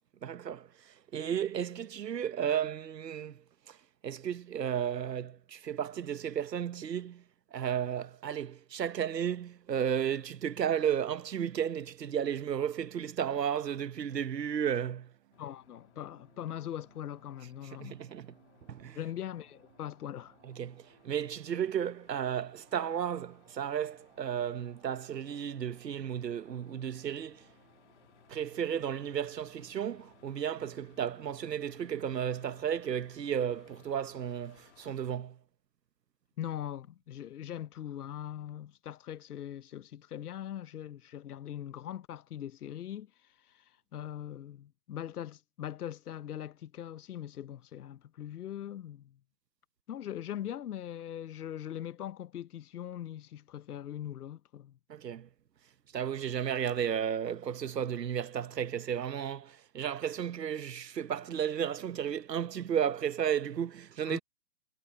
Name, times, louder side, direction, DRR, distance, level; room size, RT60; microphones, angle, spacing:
voice 1, 0.2-3.8 4.0-7.2 7.5-15.1 17.8-18.3 18.7-19.0 20.4-27.5 28.3-35.4 54.9-55.3 55.9-64.2, right 9 dB, 90° right, 1.1 m, -33 dB
sound 1, 12.0-30.4, right 14 dB, 40° right, 4.8 m, -67 dB
sound 2, 15.3-34.9, left 11 dB, 45° left, 2.2 m, -64 dB
voice 2, 15.4-18.0 19.0-20.3 36.4-43.1 43.5-43.6 43.9-49.2 49.9-54.8 64.1-64.2, left 11 dB, 70° left, 0.9 m, -41 dB
hypercardioid pair, 150°, 48 cm